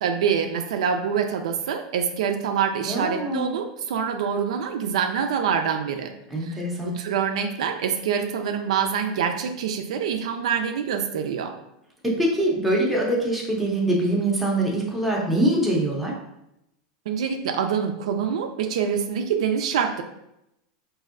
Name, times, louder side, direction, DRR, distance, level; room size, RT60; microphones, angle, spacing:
voice 1, 0.0-6.1 6.4-6.6 6.8-11.5 17.1-20.0, right 7 dB, 85° right, 6 dB, 0.4 m, -25 dB
voice 2, 2.8-3.6 6.3-7.0 12.2-16.1, right 1 dB, ahead, -4 dB, 0.6 m, -23 dB
4.1 x 2.6 x 2.5 m, 0.83 s
supercardioid pair, 170°, 3 cm